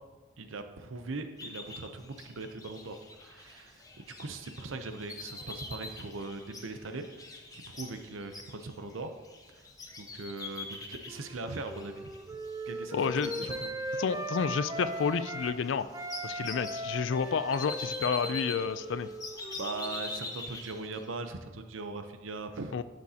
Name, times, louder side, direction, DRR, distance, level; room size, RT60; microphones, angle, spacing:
voice 1, 0.4-7.1 7.5-9.1 9.6-9.7 10.0-12.4 12.7-13.7 19.5-22.8, right 3 dB, 80° right, 8 dB, 0.7 m, -40 dB
sound 1, 1.4-12.7 13.0-14.5 14.8-21.0, left 3 dB, 20° left, 0.8 m, -44 dB
Wind instrument woodwind instrument, 11.1-15.6 15.9-20.4, right 1 dB, 15° right, 0.4 m, -39 dB
voice 2, 12.9-13.3 14.0-15.9 16.2-19.1 22.7-22.8, left 6 dB, 65° left, 14 dB, 0.4 m, -30 dB
11.5 x 6.3 x 2.8 m, 1.3 s
head